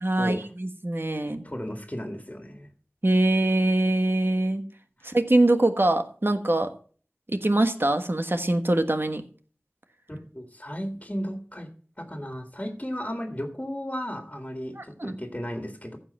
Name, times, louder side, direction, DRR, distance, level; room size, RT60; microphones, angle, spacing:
voice 1, 0.0-1.4 3.0-4.6 5.0-6.7 7.3-9.2 14.8-15.2, right 1 dB, 55° right, 7 dB, 1.4 m, -23 dB
voice 2, 1.1-2.7 5.0-5.1 10.1-11.7 12.0-16.0, equal, 25° left, 4 dB, 2.0 m, -35 dB
15.0 x 5.7 x 5.6 m, 0.42 s
wide cardioid pair, 40°, 5 cm